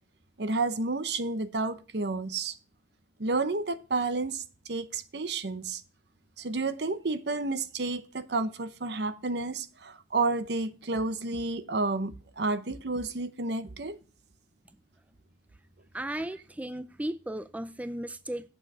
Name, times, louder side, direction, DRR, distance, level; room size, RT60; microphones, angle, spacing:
voice 1, 0.4-2.5 3.2-5.8 6.4-14.0, right 3 dB, 65° right, 0.8 m, -31 dB
voice 2, 15.9-18.5, right 1 dB, 10° right, 0.4 m, -35 dB
8.1 x 7.1 x 6.1 m
head